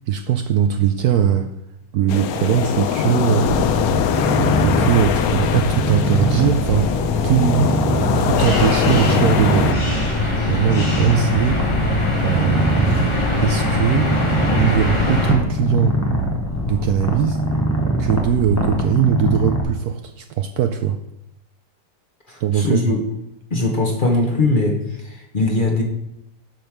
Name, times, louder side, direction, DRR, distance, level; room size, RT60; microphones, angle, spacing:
voice 1, 0.1-1.5 1.9-3.7 4.6-7.0 7.2-7.7 8.2-9.7 10.5-11.6 12.2-14.2 14.5-16.0 16.7-17.4 18.0-21.0 22.4-22.9, right 9 dB, 70° right, 8 dB, 0.9 m, -20 dB
sound 1, 2.1-9.7, left 9 dB, 70° left, 0.9 m, -22 dB
Purr, 3.5-19.6, equal, 15° left, 0.7 m, -22 dB
sound 2, 8.4-15.3, left 2 dB, 85° left, 3.5 m, -23 dB
voice 2, 22.3-23.0 23.5-25.8, left 2 dB, 35° left, 1 dB, 1.0 m, -20 dB
7.9 x 5.3 x 6.0 m, 0.87 s
omnidirectional pair, 1.9 m